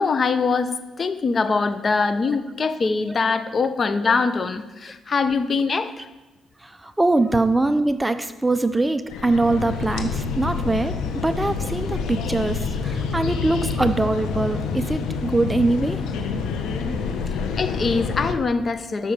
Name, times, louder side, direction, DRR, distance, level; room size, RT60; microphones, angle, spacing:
voice 1, 0.0-6.1 17.6-19.1, left 4 dB, 40° left, 11 dB, 0.8 m, -23 dB
voice 2, 6.6-16.0, right 2 dB, 10° right, 10 dB, 0.6 m, -23 dB
sound 1, 9.1-18.3, left 5 dB, 90° left, 1.2 m, -27 dB
12.5 x 6.3 x 5.4 m, 1.1 s
cardioid pair, 90°, 0 cm